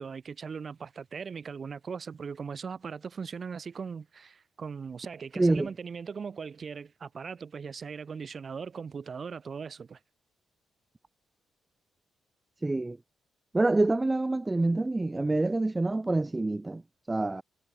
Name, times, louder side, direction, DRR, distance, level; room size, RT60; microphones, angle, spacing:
voice 1, 0.0-10.0, right 6 dB, 40° right, 2.5 m, -39 dB
voice 2, 5.4-5.7 12.6-13.0 13.5-16.8 17.1-17.4, right 2 dB, 15° right, 0.6 m, -26 dB
cardioid pair, 90°, 0 cm